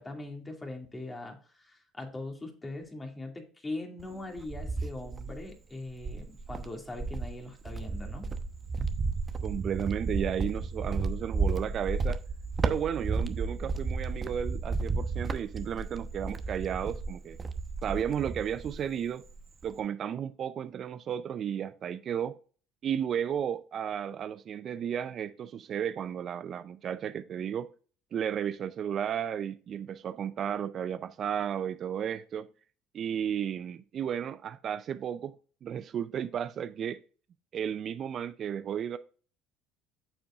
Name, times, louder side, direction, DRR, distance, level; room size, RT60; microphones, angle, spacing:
voice 1, 0.0-8.3, left 2 dB, 20° left, 2.4 m, -41 dB
Cricket, 4.0-5.5 6.0-18.9 19.2-19.8, right 4 dB, 30° right, 0.9 m, -33 dB
voice 2, 9.4-12.2 12.6-17.4 17.8-19.2 19.6-22.4 22.8-27.7 28.1-32.5 32.9-35.4 35.6-37.0 37.5-39.0, right 9 dB, 50° right, 0.5 m, -33 dB
9.0 x 7.0 x 2.5 m
hypercardioid pair, 75°, 0 cm